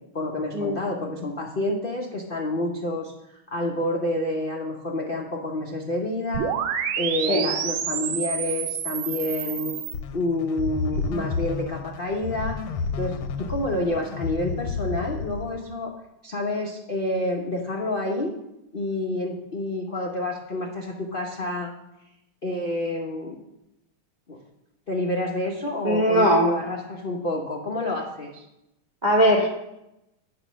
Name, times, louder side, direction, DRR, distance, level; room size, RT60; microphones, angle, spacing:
voice 1, 0.1-6.5 7.0-9.7 10.1-12.5 13.0-15.9 16.2-18.3 18.7-21.7 22.4-23.4 24.3-24.4 24.9-28.4, left 1 dB, 65° left, -1 dB, 0.5 m, -28 dB
sound 1, 6.3-9.9, right 8 dB, 70° right, 1.4 m, -28 dB
sound 2, 9.9-15.7, left 4 dB, 85° left, 1.6 m, -31 dB
voice 2, 25.8-26.5 29.0-29.5, equal, 50° right, -2 dB, 0.5 m, -19 dB
8.9 x 4.9 x 6.1 m, 0.90 s
omnidirectional pair, 2.4 m